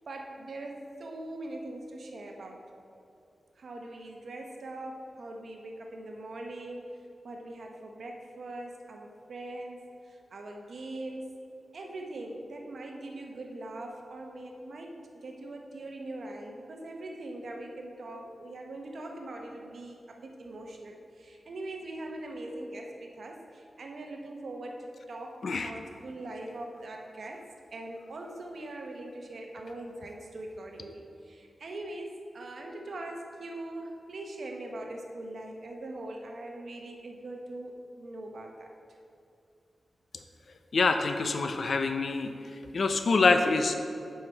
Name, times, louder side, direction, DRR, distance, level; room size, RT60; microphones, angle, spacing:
voice 1, 0.1-2.7 3.6-6.9 7.2-11.3 11.7-27.5 27.7-38.7, right 1 dB, 65° right, 2 dB, 0.9 m, -41 dB
voice 2, 40.7-42.3 42.7-43.8, left 3 dB, 60° left, 7 dB, 0.5 m, -25 dB
7.9 x 5.7 x 4.5 m, 2.5 s
wide cardioid pair, 120°, 0 cm